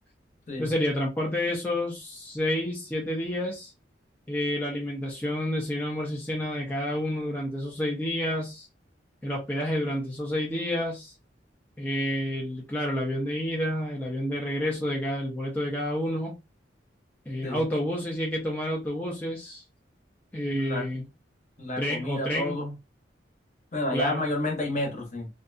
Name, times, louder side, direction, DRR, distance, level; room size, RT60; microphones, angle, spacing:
voice 1, 0.6-3.7 4.3-8.7 9.2-11.1 11.8-16.4 17.3-19.6 20.3-21.0 21.8-22.6 23.9-24.2, left 1 dB, 10° left, 0.5 m, -29 dB
voice 2, 20.5-20.9 21.6-22.7 23.7-25.3, left 1 dB, 40° left, 0.9 m, -30 dB
2.6 x 2.2 x 2.5 m
head